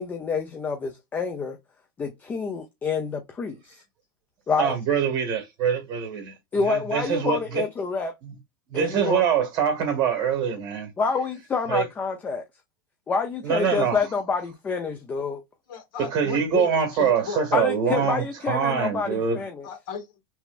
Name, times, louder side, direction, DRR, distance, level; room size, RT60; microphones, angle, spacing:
voice 1, 0.0-1.6 2.0-3.8 4.5-4.8 6.5-8.1 8.7-9.2 11.0-12.4 13.1-15.4 17.5-19.7, left 5 dB, 15° left, 0.5 m, -27 dB
voice 2, 4.6-6.3 6.7-7.6 8.7-10.9 11.7-11.8 13.4-14.0 16.0-19.4, right 7 dB, 35° right, 1.7 m, -24 dB
voice 3, 15.7-17.5 18.0-18.1 19.6-20.2, left 6 dB, 65° left, 1.5 m, -35 dB
3.4 x 2.9 x 2.4 m
supercardioid pair, 155°, 12 cm